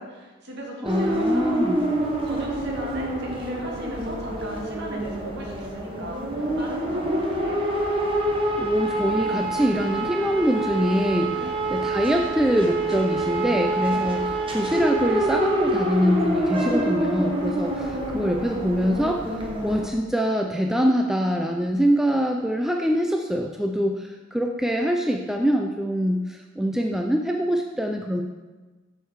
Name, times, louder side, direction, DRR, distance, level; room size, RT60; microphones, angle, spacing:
voice 1, 0.0-1.8 2.2-6.2 6.6-7.6 11.3-11.6 13.9-14.1, right 1 dB, 55° right, -1 dB, 1.7 m, -37 dB
voice 2, 0.8-1.9 8.6-11.4 11.7-14.3 14.5-19.3 19.6-28.2, equal, ahead, 2 dB, 0.4 m, -24 dB
sound 1, 0.8-19.9, right 1 dB, 25° right, 1.1 m, -26 dB
7.9 x 6.5 x 4.7 m, 1.2 s
head